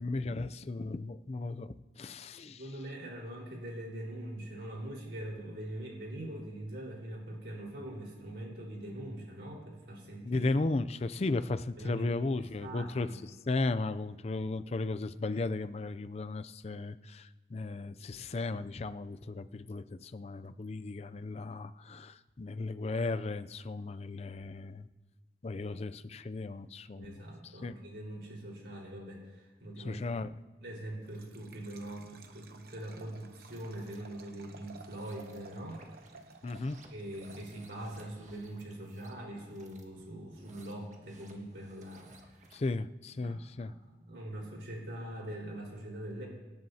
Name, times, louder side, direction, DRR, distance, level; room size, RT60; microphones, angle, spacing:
voice 1, 0.0-2.6 10.2-13.1 13.5-24.9 25.4-27.7 29.8-30.3 36.4-36.8 42.5-43.7, left 3 dB, 35° left, 12 dB, 0.4 m, -35 dB
voice 2, 2.4-10.4 11.8-12.3 12.6-13.2 26.9-30.0 30.6-35.8 36.9-42.4 43.2-46.3, right 1 dB, 75° right, -2 dB, 4.4 m, -43 dB
Liquid, 31.0-37.9, right 4 dB, 60° right, 0.9 m, -55 dB
sound 1, 33.2-34.0 34.7-42.7, right 2 dB, 45° right, 1.7 m, -59 dB
25.5 x 10.5 x 2.8 m, 1.2 s
head